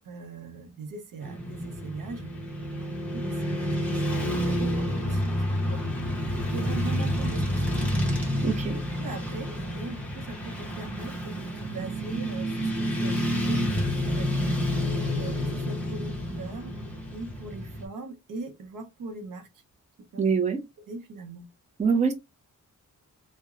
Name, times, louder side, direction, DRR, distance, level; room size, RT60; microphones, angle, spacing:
voice 1, 0.0-2.3 2.7-5.8 6.5-7.9 8.7-14.6 15.1-19.5 20.1-20.3 20.9-21.4, right 3 dB, 85° right, 0.7 m, -41 dB
Motorcycle / Traffic noise roadway noise, 1.2-17.9, equal, 5° left, 0.8 m, -29 dB
voice 2, 8.4-8.8 20.2-20.6 21.8-22.1, right 5 dB, 20° right, 0.5 m, -24 dB
2.8 x 2.1 x 2.3 m
wide cardioid pair, 130°, 32 cm